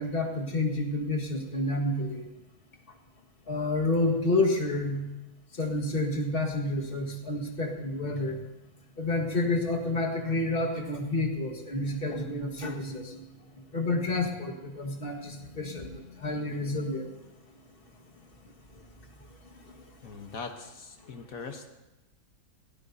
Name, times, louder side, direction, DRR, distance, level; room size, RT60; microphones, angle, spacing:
voice 1, 0.0-2.2 3.5-5.0 5.6-8.4 9.0-13.2 13.7-17.1, left 2 dB, 40° left, 2 dB, 1.9 m, -29 dB
voice 2, 20.0-21.7, left 4 dB, 75° left, 4 dB, 1.5 m, -41 dB
21.5 x 17.5 x 2.7 m, 0.99 s
omnidirectional pair, 1.5 m